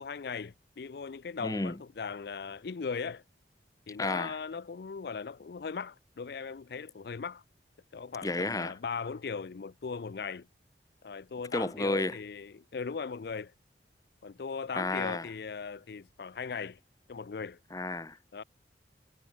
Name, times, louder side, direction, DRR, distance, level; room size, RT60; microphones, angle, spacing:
voice 1, 0.0-3.2 3.9-7.4 7.9-10.5 11.0-13.5 14.2-16.8 17.1-17.6 18.3-18.4, left 5 dB, 60° left, 0.4 m, -38 dB
voice 2, 1.4-1.8 4.0-4.4 8.2-8.7 11.5-12.2 14.7-15.3 17.7-18.2, left 2 dB, 20° left, 1.0 m, -31 dB
head